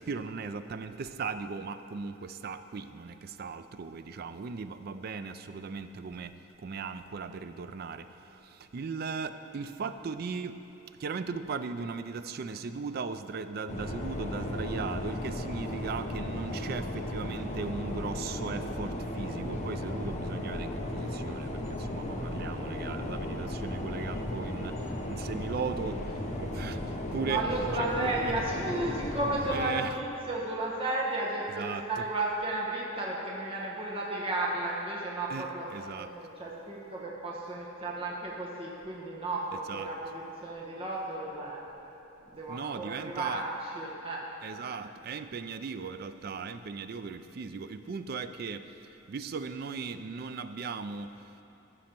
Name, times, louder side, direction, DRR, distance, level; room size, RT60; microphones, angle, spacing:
voice 1, 0.0-6.3 6.6-8.0 8.7-10.6 11.0-24.7 25.1-26.0 26.3-27.4 27.8-28.4 29.5-29.9 31.6-32.0 35.3-36.1 39.7-39.9 42.5-43.4 44.4-48.7 49.1-51.1, right 5 dB, 50° right, 11 dB, 0.4 m, -37 dB
sound 1, 13.7-29.6, left 1 dB, 35° left, 1.0 m, -35 dB
voice 2, 27.2-35.7 36.0-41.6 42.2-44.2, right 2 dB, 25° right, -4 dB, 1.1 m, -33 dB
15.0 x 6.3 x 4.5 m, 2.9 s
head